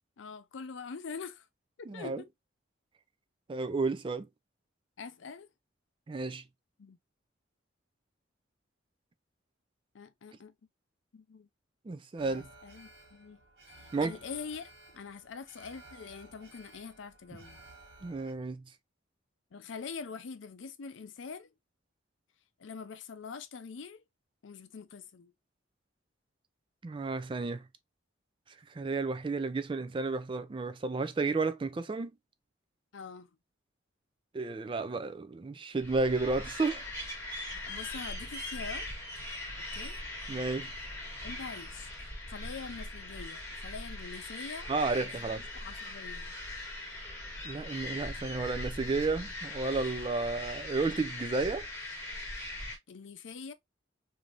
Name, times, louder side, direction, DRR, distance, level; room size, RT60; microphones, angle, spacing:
voice 1, 0.2-1.5 1.9-2.3 5.0-5.5 6.8-7.0 9.9-10.5 11.1-11.5 12.2-13.4 14.0-17.6 19.5-21.5 22.6-24.0 24.4-25.3 32.9-33.3 37.7-38.9 39.6-40.0 41.2-46.4 52.9-53.5, left 5 dB, 80° left, 0.5 m, -44 dB
voice 2, 1.9-2.2 3.5-4.3 6.1-6.4 11.9-12.5 13.9-14.2 18.0-18.6 26.8-27.6 28.7-32.1 34.3-36.8 40.3-40.7 44.7-45.5 47.4-51.7, right 3 dB, 25° right, 0.3 m, -32 dB
Alarm, 12.2-18.3, right 2 dB, 55° right, 1.2 m, -55 dB
sound 1, 35.8-52.8, left 1 dB, 15° left, 1.2 m, -40 dB
3.3 x 2.7 x 2.4 m
head